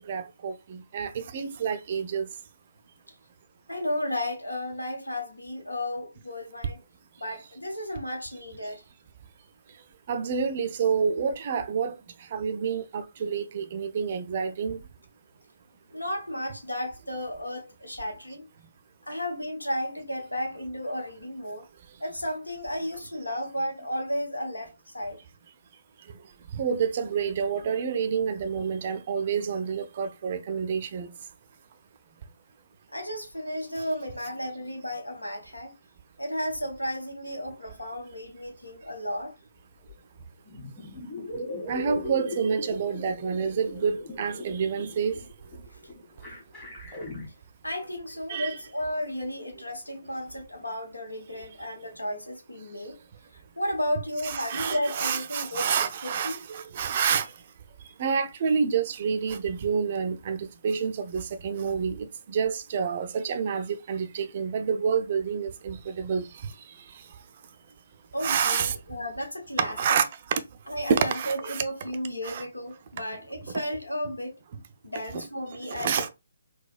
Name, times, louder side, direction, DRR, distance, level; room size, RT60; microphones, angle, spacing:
voice 1, 0.0-2.3 10.1-11.9 12.3-14.8 26.6-31.1 41.7-45.2 48.3-48.6 54.2-57.3 58.0-62.0 62.3-66.2 68.2-68.7 69.6-70.1 70.9-71.6 72.2-72.4 75.7-76.1, right 6 dB, 40° right, 0.4 m, -28 dB
voice 2, 3.7-6.8 7.2-8.8 15.9-18.5 19.1-21.6 22.0-25.2 32.9-35.7 36.2-39.3 47.6-53.0 53.6-56.4 68.1-70.0 70.7-74.4 74.8-76.1, equal, 85° left, 1.0 m, -33 dB
sound 1, 39.9-40.0 40.2-47.3, left 1 dB, 15° left, 1.4 m, -38 dB
3.9 x 2.2 x 2.4 m
figure-of-eight pair, 140°, 0 cm